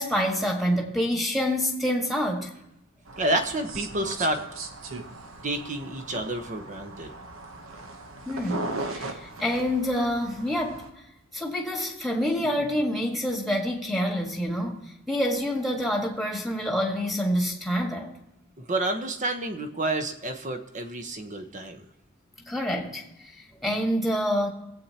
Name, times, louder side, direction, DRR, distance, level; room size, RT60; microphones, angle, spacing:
voice 1, 0.0-2.5 8.2-10.8 11.3-14.8 15.1-18.1 22.4-23.1 23.6-24.5, equal, ahead, 1.7 m, -27 dB
sound 1, 3.1-10.9, right 2 dB, 85° right, 1.0 m, -38 dB
voice 2, 3.2-4.4 5.4-7.1 18.6-21.9, right 1 dB, 40° right, 1.0 m, -29 dB
24.0 x 8.3 x 2.9 m
head